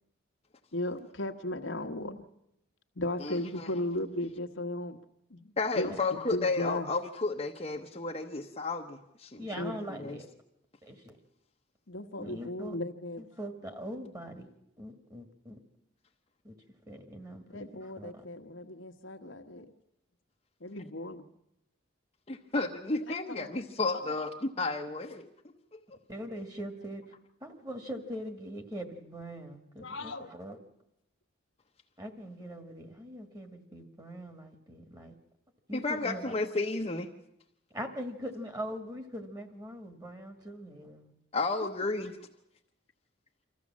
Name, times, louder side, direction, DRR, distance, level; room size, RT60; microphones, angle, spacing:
voice 1, 0.7-2.3 2.9-5.0 5.3-6.9 9.6-10.1 11.9-13.2 17.5-19.7 20.6-21.3 23.1-23.5 23.8-24.1 29.8-30.3 41.6-41.8, left 1 dB, 80° left, 1.3 m, -36 dB
voice 2, 3.2-3.7 5.6-9.5 10.0-10.2 22.3-25.3 25.7-25.8 35.7-37.1 41.3-42.1, left 3 dB, 30° left, 0.9 m, -32 dB
voice 3, 9.4-10.3 10.8-11.2 12.2-12.8 13.2-14.5 14.8-15.6 16.4-16.5 16.9-18.2 26.1-27.0 27.4-30.6 32.0-35.2 35.7-36.3 37.7-41.1, equal, 20° right, 1.8 m, -42 dB
25.0 x 14.5 x 7.4 m
head